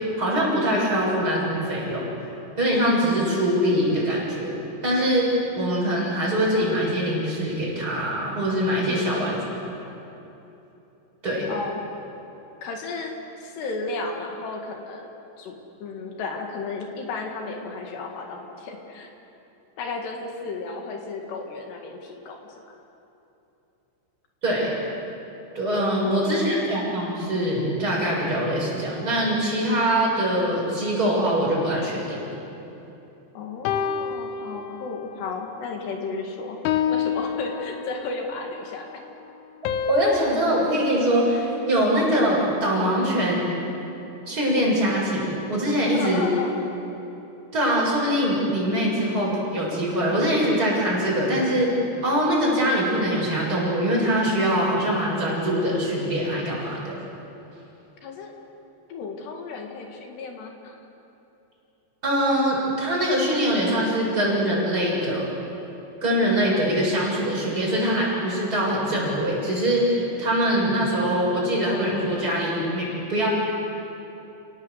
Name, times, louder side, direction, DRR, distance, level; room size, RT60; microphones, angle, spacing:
voice 1, 0.2-2.1 2.6-4.6 4.8-5.3 5.6-9.4 11.2-11.5 24.4-24.7 25.5-32.3 39.9-43.5 44.3-46.3 47.5-51.7 52.0-57.0 62.0-65.3 66.0-73.3, equal, 20° right, -5 dB, 7.2 m, -23 dB
voice 2, 8.9-9.3 11.5-11.8 12.6-19.1 19.8-22.6 25.9-26.6 33.4-36.6 36.9-38.9 45.9-46.7 58.0-58.4 58.9-60.8, left 3 dB, 65° left, 2 dB, 4.0 m, -34 dB
sound 1, 33.7-35.2 35.7-36.0 36.7-38.3 39.7-42.0, left 8 dB, 80° left, 3.4 m, -29 dB
29.5 x 18.0 x 8.1 m, 3.0 s
omnidirectional pair, 5.5 m